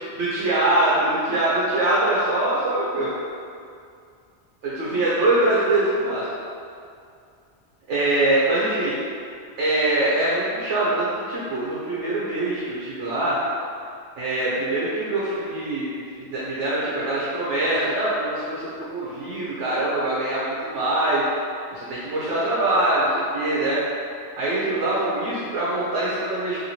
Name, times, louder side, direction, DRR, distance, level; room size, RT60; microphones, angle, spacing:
voice 1, 0.2-3.1 4.6-6.3 7.9-8.9 9.6-13.4 14.2-21.3 21.7-23.8 24.4-26.6, right 1 dB, 85° right, -7 dB, 1.0 m, -23 dB
2.9 x 2.7 x 2.9 m, 2.3 s
omnidirectional pair, 1.2 m